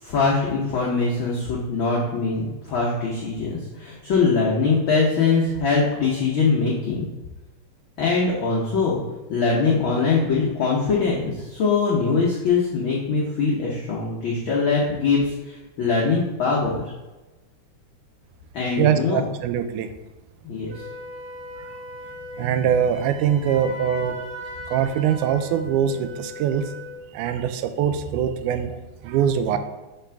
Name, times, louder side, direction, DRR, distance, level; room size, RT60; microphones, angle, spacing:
voice 1, 0.0-7.1 8.0-9.0 9.3-16.8 18.5-19.3 20.4-20.8, left 4 dB, 75° left, -5 dB, 1.1 m, -22 dB
voice 2, 18.8-19.9 22.4-24.2 24.7-26.7 27.1-28.8 29.0-29.6, right 8 dB, 85° right, 9 dB, 2.0 m, -22 dB
Wind instrument woodwind instrument, 20.7-27.0, left 2 dB, 70° right, 3.3 m, -38 dB
5.9 x 3.3 x 5.7 m, 1.1 s
omnidirectional pair, 3.5 m